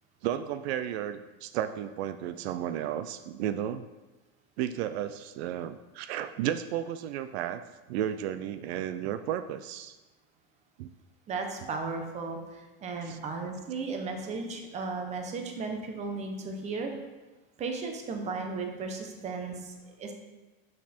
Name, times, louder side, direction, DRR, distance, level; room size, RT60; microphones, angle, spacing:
voice 1, 0.2-3.8 4.6-7.6 7.9-10.0 10.8-10.9 13.0-13.2, right 10 dB, 75° right, 11 dB, 0.5 m, -33 dB
voice 2, 11.3-16.9 17.6-20.1, right 4 dB, 20° right, 4 dB, 0.8 m, -35 dB
6.5 x 5.9 x 4.3 m, 1.2 s
supercardioid pair, 165°, 33 cm